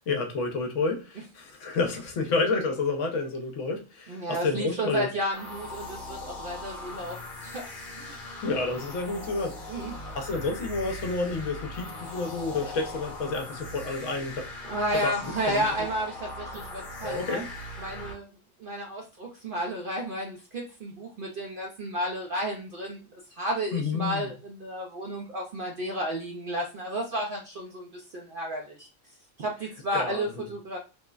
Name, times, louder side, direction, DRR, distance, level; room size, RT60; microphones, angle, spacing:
voice 1, 0.1-5.1 8.4-14.5 15.0-15.6 17.0-17.5 23.7-24.3 29.9-30.3, left 3 dB, 70° left, 4 dB, 1.0 m, -30 dB
voice 2, 4.1-7.7 8.0-8.2 9.7-9.9 14.6-17.5 17.8-18.3 18.6-28.9 29.4-30.8, right 1 dB, 65° right, 0 dB, 0.5 m, -32 dB
sound 1, 5.3-18.1, left 1 dB, 45° left, 1.0 m, -40 dB
3.1 x 2.1 x 2.2 m, 0.33 s
omnidirectional pair, 1.4 m